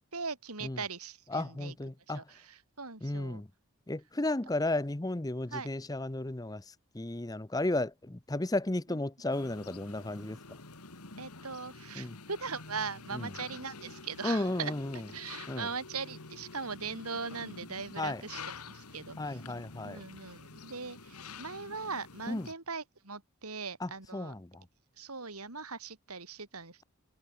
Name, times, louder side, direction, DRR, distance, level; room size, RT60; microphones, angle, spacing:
voice 1, 0.1-1.7 2.1-3.4 5.5-5.7 11.2-14.7 15.1-18.4 18.7-19.4 19.8-24.3 25.0-26.8, right 5 dB, 85° right, 4.4 m, -40 dB
voice 2, 1.3-2.2 3.0-3.5 3.9-10.4 12.0-12.2 13.1-13.3 14.2-15.0 15.5-15.7 18.0-18.2 19.2-20.0 22.3-22.5 23.8-24.6, left 2 dB, 15° left, 0.6 m, -34 dB
sound 1, 9.3-22.5, left 4 dB, 90° left, 2.6 m, -48 dB
head